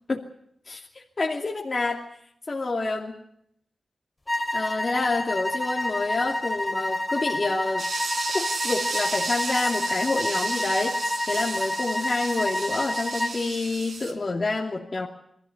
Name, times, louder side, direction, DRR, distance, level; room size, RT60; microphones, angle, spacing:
voice 1, 1.2-2.0 2.5-3.2 4.5-7.9 8.3-15.1, left 3 dB, 50° left, -2 dB, 2.7 m, -28 dB
sound 1, 4.3-13.4, left 1 dB, 25° left, 2.8 m, -29 dB
sound 2, 7.8-14.1, right 3 dB, 80° right, 3.7 m, -33 dB
22.0 x 15.5 x 9.7 m, 0.73 s
cardioid pair, 45°, 0 cm